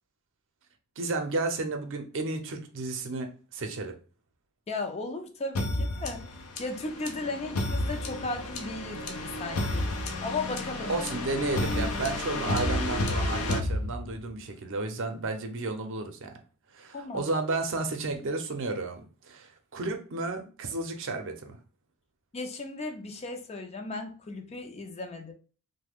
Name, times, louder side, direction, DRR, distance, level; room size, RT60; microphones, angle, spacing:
voice 1, 1.0-4.0 10.9-16.3 16.7-21.6, right 3 dB, 60° right, 0.6 m, -32 dB
voice 2, 4.7-9.9 10.2-11.0 16.9-17.3 22.3-25.3, left 3 dB, 30° left, 0.4 m, -36 dB
sound 1, 5.5-14.4, left 1 dB, 80° left, 0.6 m, -31 dB
3.1 x 2.1 x 3.4 m
head